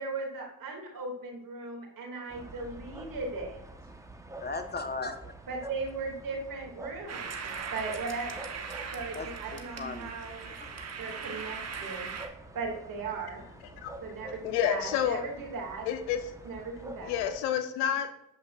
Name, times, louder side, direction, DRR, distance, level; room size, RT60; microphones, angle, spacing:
voice 1, 0.0-3.6 5.5-8.7 8.9-10.5 11.0-12.1 12.5-13.4 14.0-15.9 16.4-17.1, right 3 dB, 60° right, 1 dB, 2.7 m, -38 dB
sound 1, 2.3-17.4, right 1 dB, 10° right, 1.2 m, -48 dB
voice 2, 4.4-5.3 9.1-10.1 10.4-11.2, left 3 dB, 25° left, 7 dB, 1.3 m, -38 dB
sound 2, 7.1-12.3, right 6 dB, 45° right, 1.3 m, -40 dB
voice 3, 14.4-15.2 15.9-16.3 17.0-18.2, left 9 dB, 85° left, 10 dB, 0.7 m, -29 dB
8.2 x 7.6 x 2.6 m, 0.81 s
supercardioid pair, 60°, 37 cm